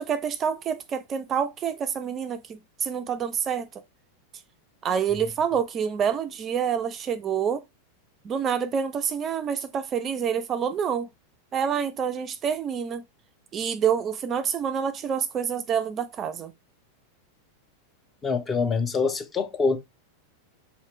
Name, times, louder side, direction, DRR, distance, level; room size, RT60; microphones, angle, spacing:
voice 1, 0.0-3.7 4.8-7.6 8.2-11.1 11.5-13.0 13.5-16.5, right 7 dB, 25° right, 0.3 m, -27 dB
voice 2, 18.2-19.8, left 4 dB, 20° left, 0.6 m, -25 dB
4.3 x 2.9 x 2.9 m
figure-of-eight pair, 90°, 0 cm